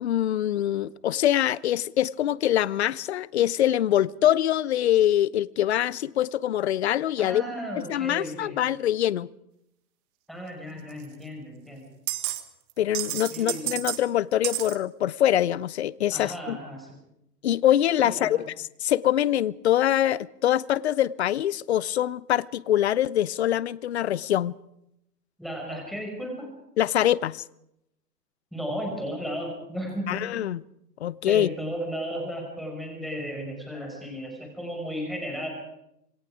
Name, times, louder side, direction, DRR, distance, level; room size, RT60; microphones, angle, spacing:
voice 1, 0.0-7.4 7.9-9.3 12.8-16.6 17.4-24.5 26.8-27.4 30.1-30.6 31.0-31.5, left 12 dB, 40° left, 0.7 m, -24 dB
voice 2, 7.2-8.6 10.3-11.8 13.1-13.7 16.1-16.9 18.0-18.4 25.4-26.5 28.5-30.3 31.3-35.5, equal, ahead, 5.3 m, -34 dB
sound 1, 11.0-11.1 12.1-12.4 12.7-14.0 14.4-14.8, right 16 dB, 25° right, 1.6 m, -30 dB
26.5 x 22.0 x 4.9 m
hypercardioid pair, 135°, 49 cm